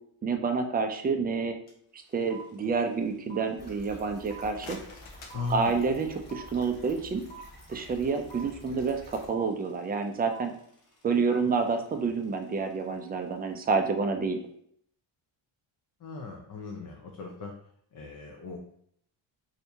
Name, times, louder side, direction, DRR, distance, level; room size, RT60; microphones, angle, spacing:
voice 1, 0.2-1.6 1.9-4.8 5.5-7.2 7.7-10.5 11.0-14.4, right 4 dB, 20° right, 5 dB, 0.4 m, -28 dB
sound 1, 1.7-1.8 2.0-13.1, right 5 dB, 85° left, 1.0 m, -50 dB
sound 2, 3.6-9.3, equal, 20° left, 1.4 m, -50 dB
sound 3, 4.4-6.3, left 4 dB, 70° left, 0.8 m, -49 dB
voice 2, 5.3-5.7 16.0-17.5 17.9-18.6, left 4 dB, 45° left, 1 dB, 0.6 m, -37 dB
2.8 x 2.7 x 3.4 m, 0.66 s
cardioid pair, 90°, 49 cm